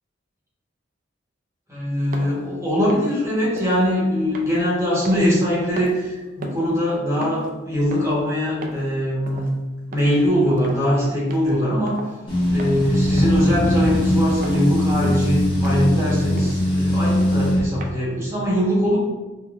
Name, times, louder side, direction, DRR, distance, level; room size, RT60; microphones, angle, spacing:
voice 1, 1.7-9.5 9.9-12.0 12.5-19.0, equal, 15° right, -7 dB, 1.1 m, -22 dB
sound 1, 2.1-2.4 2.9-3.2 3.6-3.9 4.3-5.5 5.8-6.1 6.4-6.8 7.2-7.5 7.9-8.2 8.6-8.9 9.3-9.5 9.9-10.2 10.6-10.9 11.3-11.5 11.9-12.2 12.6-12.9 13.2-13.5 13.9-14.1 14.4-14.7 15.0-15.3 15.6-15.9 16.4-16.6 17.1-17.4 17.8-17.9, right 1 dB, 50° right, 0.4 m, -36 dB
sound 2, 12.3-17.6, left 1 dB, 25° left, 1.1 m, -20 dB
3.6 x 2.7 x 2.4 m, 1.2 s
head